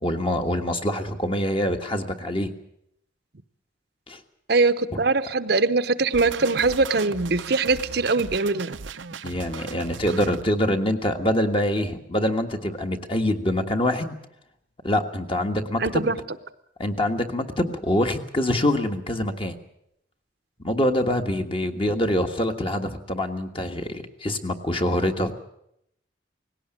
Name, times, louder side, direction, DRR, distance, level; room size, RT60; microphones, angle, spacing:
voice 1, 0.0-2.5 4.1-4.2 4.9-5.0 9.2-14.2 14.8-16.1 16.8-19.6 20.6-25.3, left 1 dB, 30° left, 5 dB, 1.5 m, -25 dB
voice 2, 4.5-8.8 15.8-16.2, right 3 dB, 60° right, 11 dB, 0.8 m, -22 dB
sound 1, 6.1-10.4, right 5 dB, 90° right, 0.7 m, -37 dB
19.0 x 17.0 x 8.9 m, 0.77 s
head